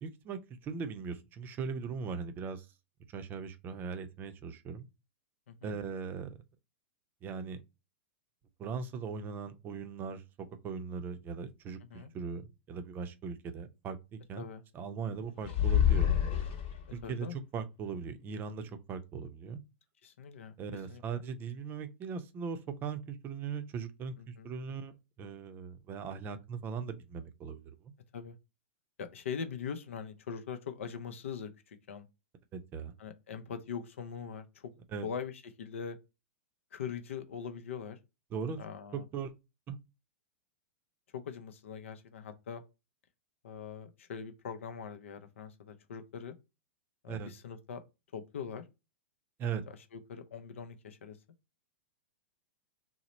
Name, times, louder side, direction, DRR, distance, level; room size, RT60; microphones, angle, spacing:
voice 1, 0.0-2.7 3.1-4.9 5.6-6.4 7.2-7.6 8.6-10.2 10.6-14.5 14.7-16.2 16.9-19.6 20.6-24.9 25.2-27.9 32.5-32.9 34.9-35.1 38.3-38.6 38.9-39.3 39.7-39.8 47.1-47.3 49.4-49.6, right 5 dB, 30° right, 0.5 m, -39 dB
sound 1, 15.4-17.1, left 10 dB, 50° left, 1.0 m, -27 dB
voice 2, 17.0-17.4 20.0-20.5 20.9-21.0 24.2-24.5 28.1-28.4 29.0-32.1 33.0-34.7 35.0-35.3 35.6-36.0 36.7-38.0 38.6-39.0 41.1-42.6 43.4-46.4 47.0-47.8 48.1-48.6 49.7-51.2, left 7 dB, 80° left, 0.5 m, -42 dB
2.9 x 2.0 x 3.9 m
hypercardioid pair, 115°, 7 cm